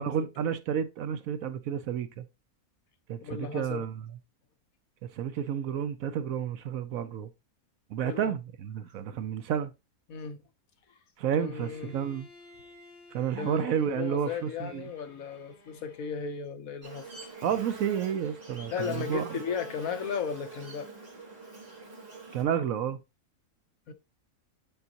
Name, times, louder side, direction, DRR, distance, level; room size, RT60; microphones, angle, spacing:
voice 1, 0.0-2.2 3.1-3.9 5.1-7.3 7.9-9.7 11.2-12.3 13.1-14.9 17.4-19.4 22.3-23.0, right 8 dB, 70° right, 1.0 m, -31 dB
voice 2, 3.2-3.8 8.0-8.3 10.1-10.4 10.9-11.0 11.4-12.0 13.4-17.1 18.7-20.9 23.9-24.0, left 6 dB, 65° left, 1.2 m, -35 dB
Bowed string instrument, 11.6-16.5, left 2 dB, 35° left, 1.6 m, -55 dB
Buzz, 16.8-22.4, right 3 dB, 25° right, 1.6 m, -44 dB
8.9 x 4.0 x 2.8 m
omnidirectional pair, 1.6 m